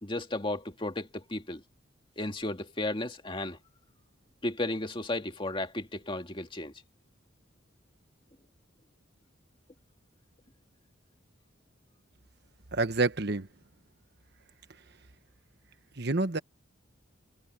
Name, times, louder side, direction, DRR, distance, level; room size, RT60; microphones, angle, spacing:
voice 1, 0.0-1.6 2.2-3.6 4.4-6.7, left 2 dB, 25° left, 2.1 m, -34 dB
voice 2, 12.7-13.5 16.0-16.4, right 3 dB, 55° right, 1.4 m, -28 dB
head